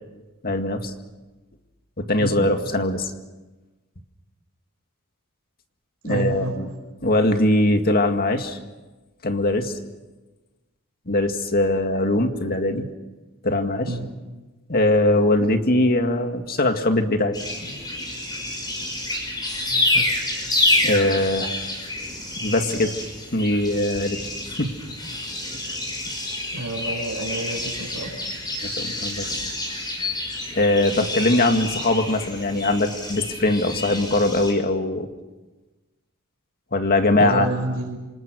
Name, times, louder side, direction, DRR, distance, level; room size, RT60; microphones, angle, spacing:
voice 1, 0.4-0.9 2.0-3.1 6.0-6.7 7.0-8.6 9.2-9.7 11.1-12.9 13.4-13.9 14.7-17.4 20.8-21.6 22.4-22.9 23.3-24.2 24.6-24.7 28.6-29.4 30.5-35.1 36.7-37.5, left 2 dB, 45° left, 6 dB, 2.1 m, -21 dB
voice 2, 6.0-6.5 13.9-14.1 19.7-20.1 26.5-28.2 37.2-38.0, right 1 dB, 85° right, 1 dB, 5.7 m, -28 dB
sound 1, 17.3-34.5, left 2 dB, 20° left, 5.7 m, -28 dB
27.0 x 26.5 x 6.3 m, 1.2 s
head